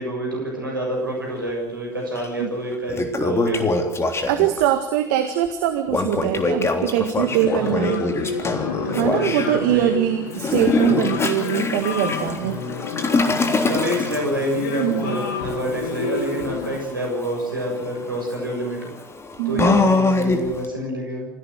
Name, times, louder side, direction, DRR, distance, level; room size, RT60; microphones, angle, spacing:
voice 1, 0.0-3.7 7.6-7.8 8.8-9.9 10.9-11.3 12.4-12.8 13.2-18.8 19.5-21.3, equal, 85° right, 0 dB, 7.2 m, -28 dB
Toilet flush, 2.2-2.3 2.7-4.6 5.9-9.5 10.3-20.6, left 3 dB, 25° left, 3.5 m, -24 dB
voice 2, 4.3-8.1 9.0-12.6 14.8-15.2 19.4-19.9, right 12 dB, 65° right, 8 dB, 1.8 m, -22 dB
sound 1, 7.3-16.8, left 6 dB, 70° left, 2.1 m, -30 dB
26.5 x 16.5 x 8.1 m, 0.81 s
figure-of-eight pair, 65°, 11 cm